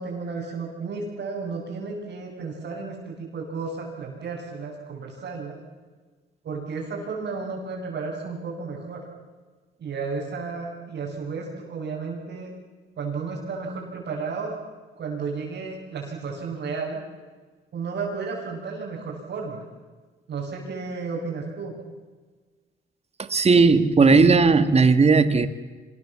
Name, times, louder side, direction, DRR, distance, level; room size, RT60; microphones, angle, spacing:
voice 1, 0.0-5.6 6.4-9.0 9.8-12.5 13.0-14.5 15.0-17.0 17.7-19.7 20.3-21.7, right 4 dB, 60° right, -6 dB, 7.5 m, -33 dB
voice 2, 23.3-25.5, right 4 dB, 30° right, 11 dB, 1.9 m, -16 dB
26.0 x 21.0 x 7.5 m, 1.4 s
cardioid pair, 90°, 20 cm